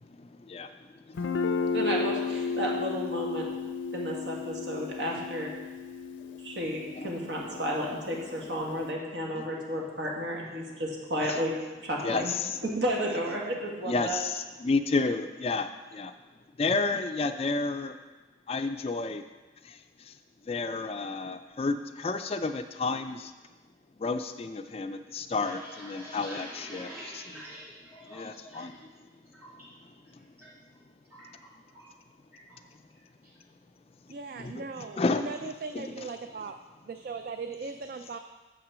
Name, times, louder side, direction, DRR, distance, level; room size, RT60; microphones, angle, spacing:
voice 1, 0.2-0.7 1.1-1.2 6.3-6.4 7.0-7.1 7.5-7.6 7.9-8.0 8.4-8.5 9.3-9.5 12.0-12.6 13.9-16.1 16.6-18.0 18.5-19.2 19.6-20.1 20.5-23.3 24.0-27.4 28.1-28.8 34.4-35.3 35.7-36.1, left 3 dB, 30° left, 8 dB, 0.3 m, -31 dB
Guitar, 1.2-8.9, left 4 dB, 90° left, 0.5 m, -34 dB
voice 2, 1.7-3.5 3.9-5.5 6.4-11.5 11.8-12.4 12.6-14.2, equal, 70° right, -2 dB, 1.7 m, -32 dB
sound 1, 25.1-28.8 29.1-29.6 30.0-30.5 30.7-32.0 32.3-32.6 32.9-33.4, equal, 10° right, 2.3 m, -46 dB
voice 3, 34.1-36.6 36.8-38.2, right 4 dB, 50° right, 7 dB, 0.3 m, -38 dB
7.4 x 6.0 x 6.2 m, 1.2 s
head